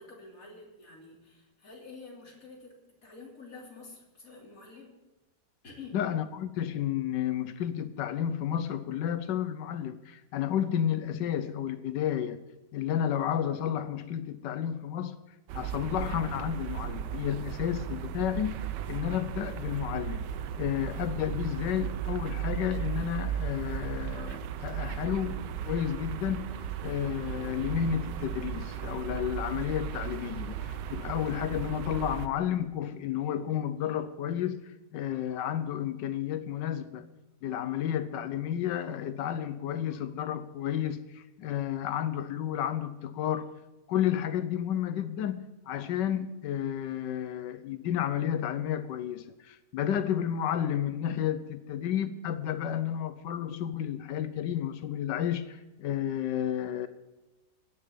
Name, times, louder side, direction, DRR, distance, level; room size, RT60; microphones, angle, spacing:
voice 1, 0.0-2.7 3.0-4.9 5.6-6.0, left 3 dB, 50° left, 3.5 m, -48 dB
voice 2, 5.9-12.4 12.7-15.2 15.5-20.3 20.6-26.6 26.8-37.1 37.4-43.5 43.9-56.9, left 10 dB, 80° left, 1.3 m, -31 dB
sound 1, 15.5-32.3, right 9 dB, 85° right, 1.3 m, -36 dB
16.5 x 6.8 x 8.4 m
omnidirectional pair, 1.9 m